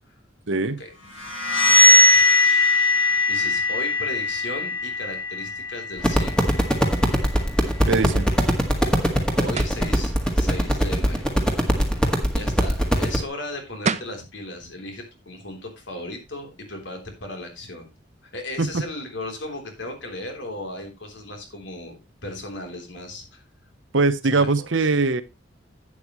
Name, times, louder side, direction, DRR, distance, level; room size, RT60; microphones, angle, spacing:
voice 1, 0.5-0.8 7.9-8.3 18.6-18.7 23.9-25.2, right 3 dB, 75° right, 14 dB, 0.9 m, -21 dB
sound 1, 1.1-6.8, left 2 dB, 85° left, 3.2 m, -20 dB
voice 2, 1.7-2.2 3.3-6.6 9.4-11.3 12.3-17.9 18.2-23.4 24.3-24.7, left 1 dB, 65° left, 4 dB, 3.5 m, -36 dB
sound 2, 6.0-13.2, equal, 5° left, 1.9 m, -21 dB
sound 3, 9.5-9.9 13.5-13.6 13.8-14.2, right 5 dB, 35° right, 0.6 m, -26 dB
11.5 x 9.0 x 3.1 m, 0.23 s
head